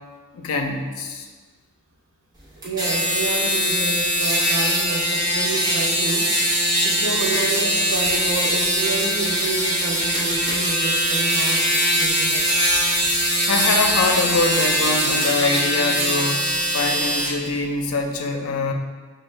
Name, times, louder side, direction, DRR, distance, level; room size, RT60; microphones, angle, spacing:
voice 1, 0.3-1.3 13.0-13.1 13.5-16.5 16.7-18.7, left 3 dB, 90° left, 3 dB, 0.5 m, -24 dB
sound 1, 2.6-17.3, equal, 20° right, 0.8 m, -21 dB
voice 2, 2.6-6.3 6.8-12.6 13.0-13.1, right 3 dB, 80° right, 1 dB, 0.6 m, -29 dB
5.2 x 2.2 x 3.2 m, 1.4 s
head